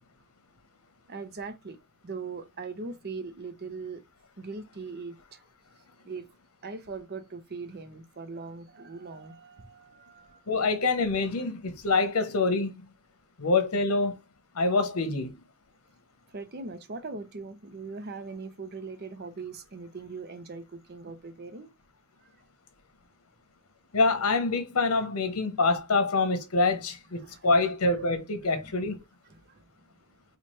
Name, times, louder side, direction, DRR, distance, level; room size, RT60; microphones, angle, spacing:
voice 1, 1.1-1.8 2.0-4.0 4.4-5.4 6.0-6.3 6.6-10.4 16.3-21.7 27.1-27.7 28.5-29.0 29.2-29.6, right 4 dB, 45° right, 0.7 m, -40 dB
voice 2, 10.5-12.9 13.4-14.2 14.6-15.3 23.9-29.0, left 3 dB, 75° left, 0.9 m, -26 dB
4.3 x 2.4 x 3.1 m
head